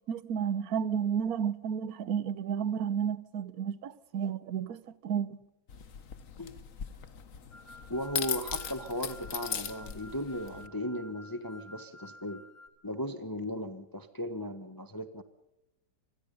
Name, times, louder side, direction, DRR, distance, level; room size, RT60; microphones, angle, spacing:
voice 1, 0.1-5.4, right 8 dB, 55° right, 1.3 m, -32 dB
sound 1, 5.7-10.7, left 7 dB, 50° left, 1.4 m, -39 dB
sound 2, 7.5-12.7, left 1 dB, 75° left, 3.7 m, -52 dB
voice 2, 7.9-12.4 12.8-15.2, equal, 15° left, 1.1 m, -36 dB
28.0 x 21.0 x 5.5 m
omnidirectional pair, 2.1 m